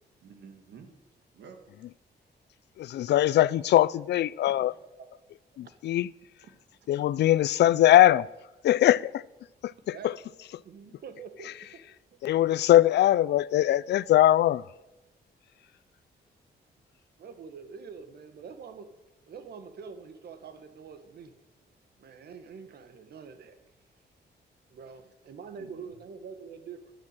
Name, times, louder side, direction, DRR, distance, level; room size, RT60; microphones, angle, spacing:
voice 1, 0.2-0.9 1.3-1.6 4.5-5.1 6.4-6.5 10.8-10.9 25.6-26.0, right 6 dB, 90° right, 2.0 m, -50 dB
voice 2, 2.8-4.7 5.6-6.1 6.9-8.3 8.6-9.1 9.9-10.1 12.2-14.6, left 13 dB, 75° left, 0.4 m, -21 dB
voice 3, 10.6-11.8 12.1-12.5 17.2-18.9 19.3-21.4 22.0-23.6 24.7-26.9, right 6 dB, 65° right, 1.3 m, -45 dB
10.5 x 10.0 x 8.7 m
wide cardioid pair, 165°, 18 cm